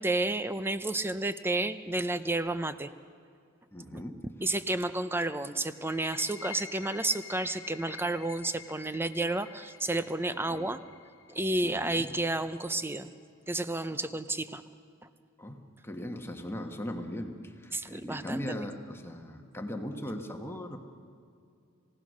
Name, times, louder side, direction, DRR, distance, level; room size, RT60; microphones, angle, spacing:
voice 1, 0.0-2.9 3.9-4.0 4.4-10.8 11.3-13.1 13.5-14.6 17.7-18.4, right 2 dB, 10° right, 12 dB, 0.6 m, -31 dB
voice 2, 3.7-4.2 4.4-4.5 10.3-10.7 11.6-12.1 15.4-20.8, left 1 dB, 10° left, 4 dB, 1.4 m, -39 dB
sound 1, 5.7-13.1, left 10 dB, 65° left, 0.8 m, -49 dB
28.0 x 16.5 x 6.4 m, 2.4 s
head